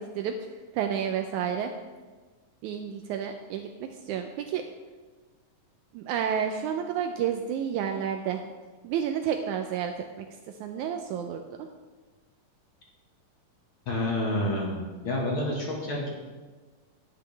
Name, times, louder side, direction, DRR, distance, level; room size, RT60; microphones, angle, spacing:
voice 1, 0.0-1.7 2.6-4.6 5.9-8.4 8.8-10.3 10.6-11.7, right 8 dB, 85° right, 5 dB, 1.7 m, -30 dB
voice 2, 13.8-16.1, left 1 dB, 50° left, -2 dB, 1.7 m, -29 dB
10.5 x 10.0 x 3.3 m, 1.3 s
omnidirectional pair, 4.0 m